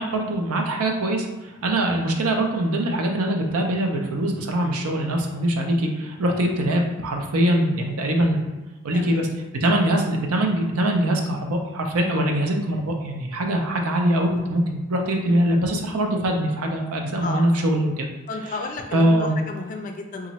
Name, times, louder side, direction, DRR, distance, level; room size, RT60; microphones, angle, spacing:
voice 1, 0.0-8.4 8.8-9.3 9.6-18.1 18.9-19.4, right 1 dB, 85° right, 2 dB, 0.6 m, -23 dB
voice 2, 18.3-20.3, left 3 dB, 35° left, 4 dB, 0.4 m, -33 dB
3.0 x 2.5 x 4.1 m, 1.1 s
head